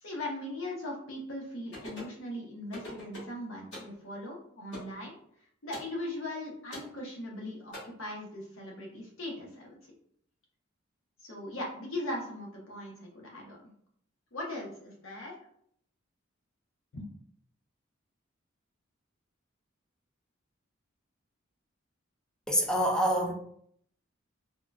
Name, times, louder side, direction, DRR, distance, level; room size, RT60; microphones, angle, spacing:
voice 1, 0.0-5.1 5.6-9.8 11.2-13.6 14.3-15.3 16.9-17.0, left 1 dB, 85° left, -2 dB, 0.9 m, -39 dB
sound 1, 1.7-2.2 2.7-3.3 3.7-3.9 4.7-4.9 5.7-5.9 6.7-6.9 7.7-7.8, left 1 dB, 60° left, 1.3 m, -42 dB
voice 2, 22.5-23.3, equal, 5° left, 0 dB, 0.4 m, -26 dB
3.7 x 2.2 x 2.2 m, 0.66 s
head